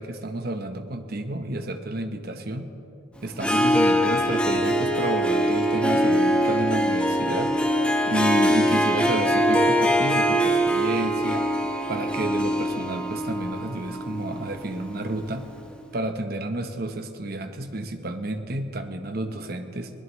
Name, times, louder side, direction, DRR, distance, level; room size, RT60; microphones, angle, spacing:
voice 1, 0.0-2.7 3.2-7.5 8.1-11.5 11.9-15.5 15.9-19.9, right 1 dB, 50° right, 7 dB, 1.0 m, -30 dB
Harp, 3.3-15.2, equal, 5° left, 1.1 m, -23 dB
23.5 x 17.5 x 3.1 m, 2.8 s
head